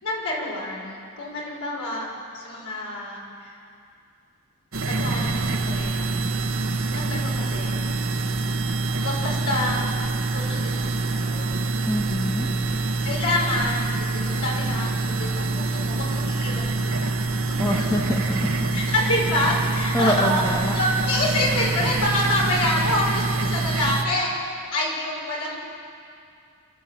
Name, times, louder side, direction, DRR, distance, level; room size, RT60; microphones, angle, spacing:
voice 1, 0.0-2.1 2.3-3.6 4.9-6.3 6.9-7.8 9.0-9.9 10.3-11.5 13.0-17.4 18.7-20.4 20.7-25.6, left 1 dB, 85° left, -3 dB, 5.9 m, -27 dB
sound 1, 4.7-24.0, right 3 dB, 65° right, 1.5 m, -25 dB
voice 2, 11.8-12.5 17.6-18.2 18.8-18.9 19.9-20.8, equal, 15° left, 0 dB, 1.6 m, -25 dB
28.5 x 13.0 x 8.8 m, 2.4 s
head